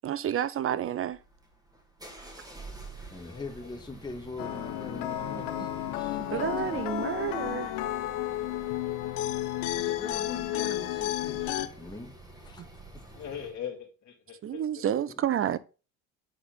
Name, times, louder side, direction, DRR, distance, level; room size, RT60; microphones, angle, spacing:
voice 1, 0.0-1.2 5.4-5.7 6.2-7.7 14.4-15.6, right 10 dB, 35° right, 0.7 m, -30 dB
sound 1, 1.1-13.6, right 3 dB, 10° right, 2.1 m, -48 dB
voice 2, 3.1-6.8 9.8-12.6 12.9-13.0, left 3 dB, 10° left, 1.7 m, -42 dB
sound 2, 4.4-11.7, left 14 dB, 75° left, 0.8 m, -32 dB
voice 3, 13.1-14.8, left 9 dB, 45° left, 2.5 m, -40 dB
8.6 x 4.3 x 3.8 m
hypercardioid pair, 75°, 37 cm